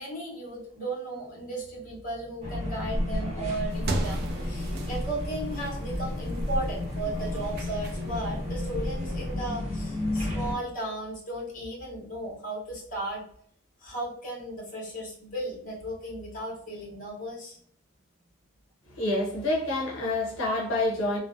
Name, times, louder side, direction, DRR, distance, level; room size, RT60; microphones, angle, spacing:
voice 1, 0.0-13.2 13.8-17.6, right 1 dB, 40° left, 0.9 m, -35 dB
sound 1, 2.4-10.5, left 1 dB, 35° right, 0.9 m, -32 dB
sound 2, 3.7-9.4, right 1 dB, 50° right, 0.3 m, -37 dB
voice 2, 18.9-21.2, left 2 dB, 80° left, 0.6 m, -27 dB
2.4 x 2.0 x 2.5 m
head